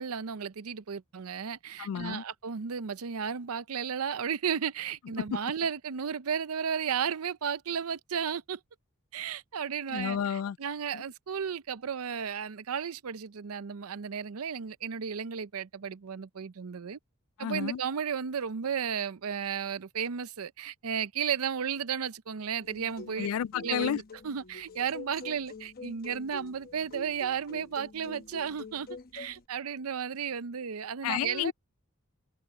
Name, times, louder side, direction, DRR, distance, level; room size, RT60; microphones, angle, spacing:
voice 1, 0.0-8.6 9.1-17.0 17.4-23.3 23.6-31.5, right 7 dB, 90° right, 0.6 m, -34 dB
voice 2, 1.8-2.2 5.2-5.4 9.9-10.6 10.9-11.0 17.4-17.8 23.2-24.0 31.0-31.5, left 9 dB, 75° left, 0.3 m, -31 dB
sound 1, 22.6-29.4, left 3 dB, 45° left, 1.0 m, -46 dB
head